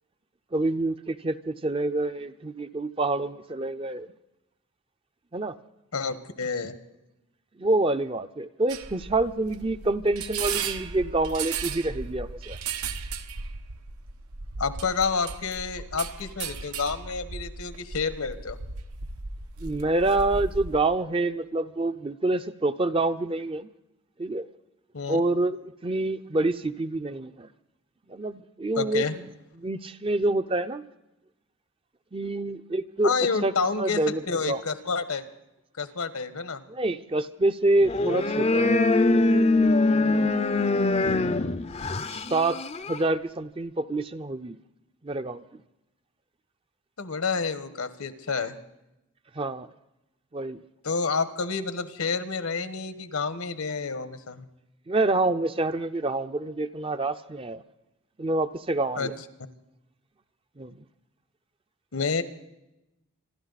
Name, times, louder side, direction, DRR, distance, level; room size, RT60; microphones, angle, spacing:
voice 1, 0.5-4.1 5.3-5.6 7.6-12.6 19.6-23.7 24.2-24.5 25.1-25.6 25.8-27.5 28.1-29.3 29.6-30.8 32.1-33.1 33.4-34.6 36.7-40.3 42.1-42.6 42.9-44.6 45.0-45.4 49.4-49.7 50.3-50.6 54.9-57.6 58.2-59.1 60.6-60.8, right 2 dB, 25° right, 10 dB, 0.5 m, -27 dB
voice 2, 5.9-6.7 14.6-18.6 24.9-25.2 28.8-29.1 33.0-35.2 35.8-36.6 47.0-48.6 50.8-54.5 59.0-59.1 61.9-62.2, left 4 dB, 80° left, 11 dB, 1.3 m, -29 dB
sound 1, 8.7-20.8, right 5 dB, 85° right, 1.0 m, -36 dB
sound 2, 37.8-43.1, left 2 dB, 30° left, 0.5 m, -23 dB
26.5 x 12.5 x 4.1 m, 0.92 s
head